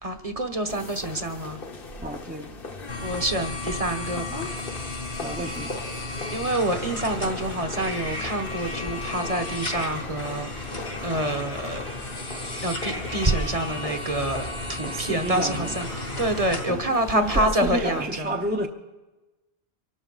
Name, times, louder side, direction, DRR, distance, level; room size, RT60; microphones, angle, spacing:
voice 1, 0.0-1.6 3.0-4.5 6.3-10.5 11.0-11.8 12.6-15.9 16.2-18.3, right 1 dB, 35° right, 6 dB, 1.1 m, -27 dB
sound 1, 0.7-18.1, left 3 dB, 60° left, 1.3 m, -39 dB
voice 2, 2.0-2.5 5.2-5.8 14.9-15.8 16.7-16.8 17.1-18.7, right 1 dB, 10° right, 3 dB, 0.7 m, -30 dB
sound 2, 2.9-16.7, left 2 dB, 80° left, 3.1 m, -34 dB
24.5 x 12.0 x 4.0 m, 1.1 s
omnidirectional pair, 1.1 m